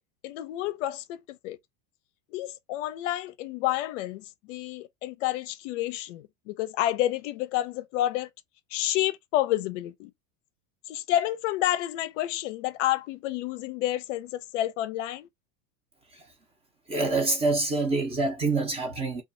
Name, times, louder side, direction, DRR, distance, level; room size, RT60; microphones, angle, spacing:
voice 1, 0.2-1.6 2.3-8.3 8.7-10.1 10.9-15.3, left 14 dB, 60° left, 0.5 m, -29 dB
voice 2, 16.9-19.2, right 3 dB, 15° right, 0.5 m, -26 dB
2.5 x 2.3 x 2.5 m
supercardioid pair, 135°, 41 cm